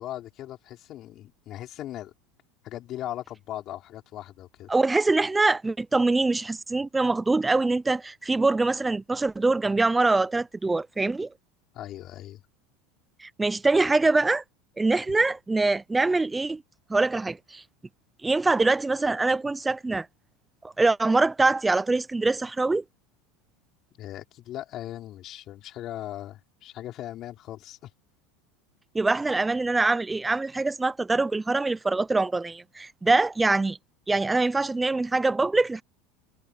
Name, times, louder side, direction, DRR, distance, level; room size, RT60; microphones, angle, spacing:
voice 1, 0.0-2.1 2.6-4.7 11.7-12.4 24.0-27.9, left 13 dB, 30° left, 4.6 m, -38 dB
voice 2, 4.7-11.3 13.2-14.4 14.8-16.6 16.9-17.6 18.2-20.1 20.8-22.8 28.9-33.8 34.1-35.8, right 3 dB, 5° right, 0.3 m, -24 dB
supercardioid pair, 170°, 0 cm